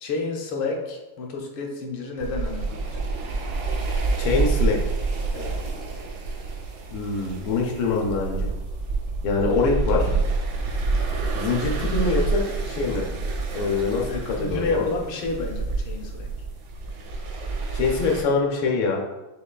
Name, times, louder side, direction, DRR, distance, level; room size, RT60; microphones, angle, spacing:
voice 1, 0.0-2.9 5.3-5.6 14.1-16.3, left 3 dB, 75° left, 1 dB, 1.4 m, -30 dB
sound 1, 2.2-18.2, right 3 dB, 65° right, 1.1 m, -28 dB
voice 2, 4.2-4.8 6.9-8.5 9.2-10.1 11.3-13.1 13.5-14.9 17.7-19.0, left 4 dB, 90° left, -1 dB, 1.5 m, -24 dB
6.5 x 3.1 x 2.2 m, 1.1 s
omnidirectional pair, 2.3 m